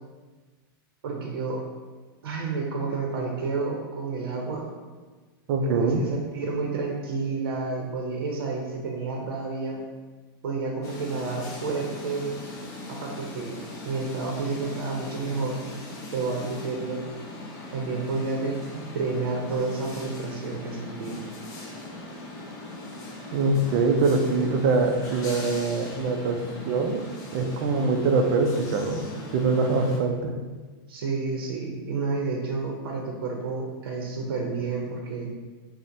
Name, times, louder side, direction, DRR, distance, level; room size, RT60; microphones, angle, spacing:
voice 1, 1.0-1.6 2.2-4.6 5.6-9.8 10.4-12.4 12.9-15.6 16.1-17.0 17.7-18.6 18.9-21.2 30.9-35.3, right 4 dB, 85° right, -1 dB, 0.6 m, -30 dB
voice 2, 5.5-6.0 23.3-26.4 26.6-27.0 27.3-29.0 29.3-30.3, right 3 dB, 40° right, 4 dB, 0.4 m, -23 dB
sound 1, 10.8-30.0, left 2 dB, 30° left, 0.6 m, -40 dB
5.7 x 2.1 x 2.6 m, 1.3 s
supercardioid pair, 160°, 12 cm